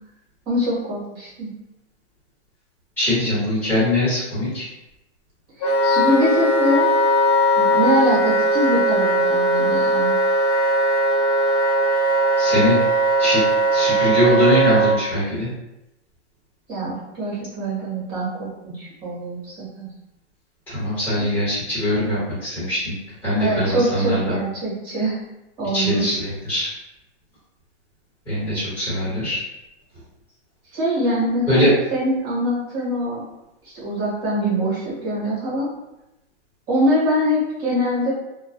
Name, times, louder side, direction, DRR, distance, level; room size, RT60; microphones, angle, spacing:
voice 1, 0.5-1.5 5.6-6.9 7.6-10.2 16.7-19.9 23.4-25.2 25.6-26.1 30.7-33.2 33.6-35.7 36.7-38.1, equal, 15° right, -9 dB, 0.8 m, -23 dB
voice 2, 3.0-4.6 12.4-12.8 13.2-13.4 13.7-15.5 20.7-22.9 23.2-24.4 25.7-26.7 28.3-29.4 31.5-31.7, left 1 dB, 5° left, -14 dB, 1.0 m, -21 dB
Wind instrument woodwind instrument, 5.6-14.9, right 1 dB, 40° left, 0.5 m, -19 dB
2.2 x 2.1 x 2.6 m, 0.92 s
hypercardioid pair, 165°, 36 cm